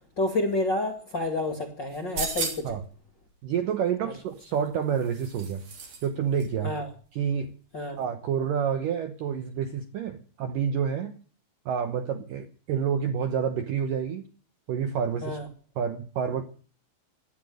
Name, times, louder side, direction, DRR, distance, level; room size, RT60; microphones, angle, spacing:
voice 1, 0.2-2.7 6.6-6.9 7.7-8.0 15.2-15.4, left 2 dB, 35° left, 1.9 m, -29 dB
sound 1, 1.9-2.8 4.3-6.1 6.4-6.5, right 4 dB, 45° right, 4.5 m, -35 dB
voice 2, 3.4-5.7 6.0-6.8 7.1-7.5 8.0-11.1 11.7-14.3 14.7-15.4 15.8-16.4, right 7 dB, 70° right, 2.1 m, -28 dB
17.5 x 11.5 x 6.5 m
omnidirectional pair, 5.2 m